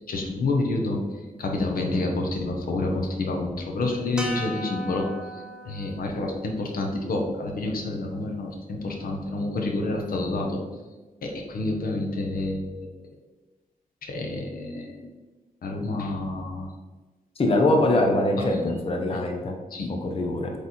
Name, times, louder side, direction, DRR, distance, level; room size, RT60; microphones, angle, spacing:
voice 1, 0.1-10.6 11.2-12.9 14.0-15.1 15.6-16.7 18.5-18.8 19.1-19.2 19.7-19.9, left 2 dB, 80° left, 2 dB, 1.0 m, -29 dB
sound 1, 4.2-8.5, equal, 5° right, 0.7 m, -39 dB
voice 2, 17.4-19.5 20.0-20.5, left 1 dB, 40° left, 2 dB, 0.9 m, -23 dB
8.1 x 3.4 x 4.3 m, 1.2 s
wide cardioid pair, 140°, 15 cm